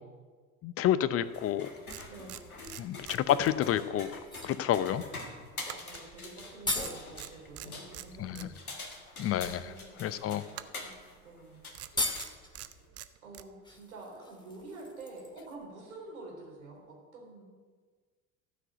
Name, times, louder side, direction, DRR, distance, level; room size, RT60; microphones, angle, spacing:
voice 1, 0.6-1.7 2.8-5.0 8.2-8.5 9.2-9.7 10.0-10.5, left 11 dB, 35° left, 15 dB, 0.7 m, -29 dB
sound 1, 1.2-12.9, left 2 dB, 85° left, 1.6 m, -46 dB
sound 2, 1.4-1.5 1.9-3.9 4.2-4.4 5.7-6.5 6.8-8.5 10.5-11.0 11.7-13.5, right 13 dB, 35° right, 0.7 m, -46 dB
voice 2, 2.1-2.4 4.6-4.8 5.7-8.7 9.6-10.0 10.5-11.7 13.2-17.4, right 2 dB, 75° right, -1 dB, 3.8 m, -48 dB
sound 3, 4.2-4.6 6.1-6.2 6.4-7.1 8.5-8.6 9.2-9.4 10.3-10.4 10.8-10.9 11.2-11.3 11.8-12.5 13.6-15.7 16.0-16.1, left 2 dB, 10° left, 1.8 m, -37 dB
13.5 x 6.1 x 7.9 m, 1.5 s
figure-of-eight pair, 70°, 42 cm